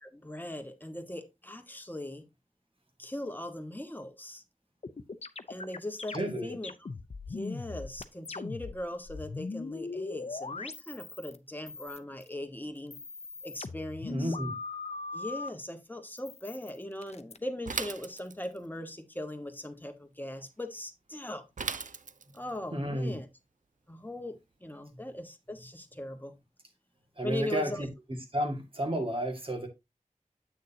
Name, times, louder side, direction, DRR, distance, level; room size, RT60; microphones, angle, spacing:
voice 1, 0.0-2.2 3.0-4.4 5.5-6.7 7.3-13.0 13.4-14.4 15.1-21.4 22.3-23.3 23.9-26.4 27.2-27.9, left 1 dB, 15° left, 1.2 m, -39 dB
sound 1, 4.8-11.4 11.7-12.3 12.8-15.5 16.2-17.4, left 3 dB, 55° left, 0.6 m, -40 dB
voice 2, 6.1-6.5 14.1-14.5 22.7-23.1 27.2-27.9 28.3-29.7, right 1 dB, 45° right, 2.0 m, -31 dB
Bicycle / Mechanisms, 17.7-18.7 21.6-22.5, right 5 dB, 80° right, 0.5 m, -37 dB
8.1 x 6.4 x 2.8 m
wide cardioid pair, 55°, 13 cm